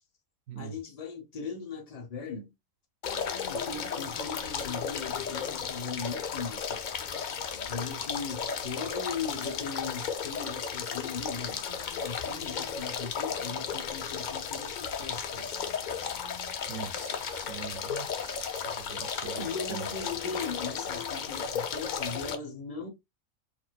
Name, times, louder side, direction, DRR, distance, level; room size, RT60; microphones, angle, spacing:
voice 1, 0.6-2.5 3.5-6.9 7.7-11.7 12.0-15.7 19.4-22.9, left 5 dB, 35° left, 0.8 m, -39 dB
sound 1, 3.0-22.4, left 6 dB, 65° left, 0.4 m, -34 dB
voice 2, 16.7-19.8, right 9 dB, 85° right, 1.0 m, -43 dB
4.2 x 2.4 x 2.2 m
omnidirectional pair, 1.4 m